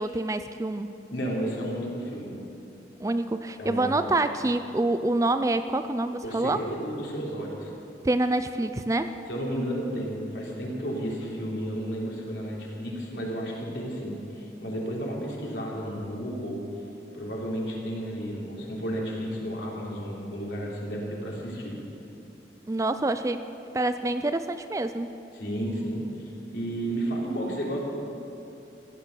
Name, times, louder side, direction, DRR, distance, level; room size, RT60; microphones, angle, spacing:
voice 1, 0.0-1.0 3.0-6.6 8.0-9.1 22.7-23.4 23.7-25.1, right 2 dB, 15° right, 10 dB, 0.4 m, -26 dB
voice 2, 1.1-2.3 3.6-4.1 6.2-7.7 9.3-16.6 17.1-21.7 25.3-27.8, equal, 70° left, -3 dB, 3.4 m, -32 dB
16.0 x 11.5 x 6.7 m, 2.8 s
head